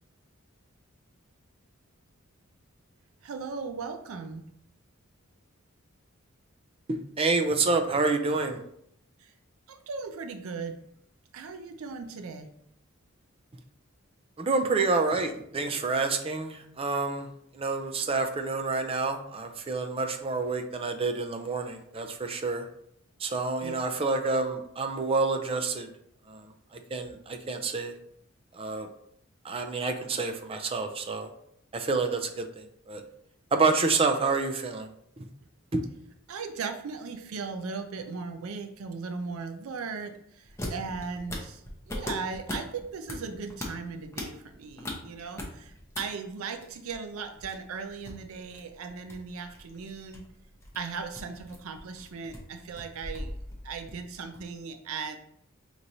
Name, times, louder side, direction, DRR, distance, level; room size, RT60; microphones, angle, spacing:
voice 1, 3.2-4.4 9.2-9.3 9.7-10.8 11.3-12.5 23.6-23.7 36.3-50.2 50.7-53.3 53.6-55.2, right 5 dB, 85° right, 7 dB, 0.4 m, -38 dB
voice 2, 6.9-8.6 14.4-17.3 17.5-22.7 23.2-25.9 26.3-26.5 26.9-27.9 28.5-28.9 29.4-31.3 31.7-33.0 33.5-34.9 35.2-35.3 35.7-35.9, right 3 dB, 25° right, 5 dB, 0.4 m, -28 dB
sound 1, 40.4-46.0 46.3-54.5, left 1 dB, 15° left, 0.7 m, -40 dB
5.1 x 3.0 x 2.7 m, 0.71 s
head